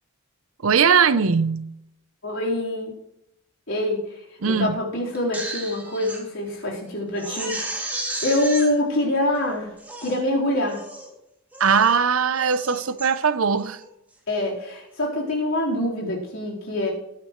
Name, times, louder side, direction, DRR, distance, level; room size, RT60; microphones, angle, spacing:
voice 1, 0.6-1.7 4.4-4.8 11.6-13.8, right 6 dB, 90° right, 0.7 m, -20 dB
voice 2, 2.2-3.0 3.7-4.0 4.4-7.6 8.2-9.7 10.0-10.8 14.3-16.9, left 1 dB, 75° left, 4.2 m, -25 dB
Crying sobbing, 5.1-6.2 6.6-6.7 7.2-8.7 9.3-9.4 9.8-10.2 10.7-11.1 11.5-12.0 12.3-13.1 13.6-13.8, right 1 dB, 10° right, 2.6 m, -33 dB
19.0 x 9.5 x 3.2 m
head